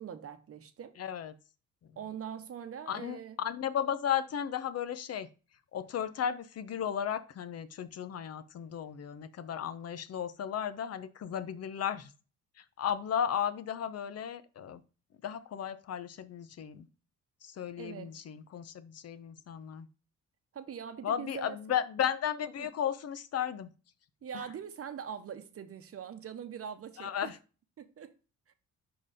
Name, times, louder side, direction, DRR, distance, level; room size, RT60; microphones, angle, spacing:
voice 1, 0.0-1.0 2.0-3.4 17.8-18.1 20.5-21.6 22.6-22.7 24.2-27.3 27.8-28.1, right 8 dB, 50° right, 0.9 m, -42 dB
voice 2, 1.0-1.3 1.8-2.0 2.9-5.3 5.7-12.1 12.6-14.8 15.2-16.9 17.4-19.9 21.0-23.7 24.3-24.5 27.0-27.4, left 9 dB, 55° left, 0.8 m, -35 dB
5.7 x 4.5 x 4.9 m
cardioid pair, 90°, 30 cm